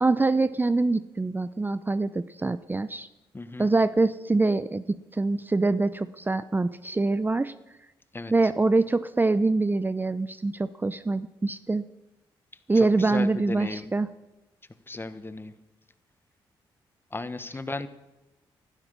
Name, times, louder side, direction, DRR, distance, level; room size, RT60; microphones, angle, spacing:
voice 1, 0.0-3.1 3.6-7.5 8.3-11.8 12.7-14.1, right 3 dB, 20° right, 14 dB, 0.6 m, -24 dB
voice 2, 3.3-3.7 8.1-8.3 12.8-13.9 14.9-15.5 17.1-17.9, left 2 dB, 25° left, 12 dB, 1.2 m, -35 dB
16.0 x 12.0 x 6.8 m, 1.0 s
supercardioid pair, 60°, 10 cm